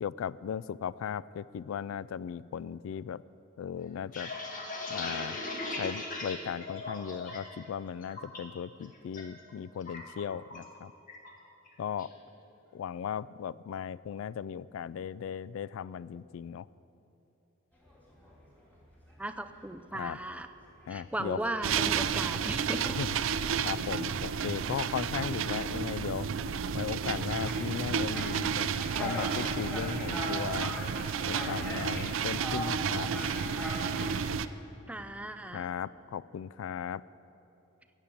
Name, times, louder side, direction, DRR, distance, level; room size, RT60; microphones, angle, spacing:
voice 1, 0.0-3.2 3.6-4.3 4.9-5.4 5.8-10.9 11.8-12.1 12.7-16.7 19.9-20.2 20.9-21.4 23.0-23.1 23.6-26.3 26.7-28.7 29.0-30.8 31.2-33.1 35.5-37.0, left 8 dB, 80° left, 20 dB, 0.3 m, -37 dB
sound 1, 3.9-7.6 7.9-8.4 8.8-9.2 9.5-10.7 11.1-11.3 11.7-12.1, left 2 dB, 40° left, 1.7 m, -39 dB
sound 2, 17.8-18.7 18.9-19.5 19.7-34.1, equal, 10° left, 3.2 m, -42 dB
voice 2, 19.2-20.5 20.9-22.9 34.9-35.7, right 1 dB, 5° right, 9 dB, 0.5 m, -37 dB
sound 3, 21.6-34.5, right 6 dB, 70° right, 0.4 m, -32 dB
14.5 x 7.4 x 8.5 m, 3.0 s
head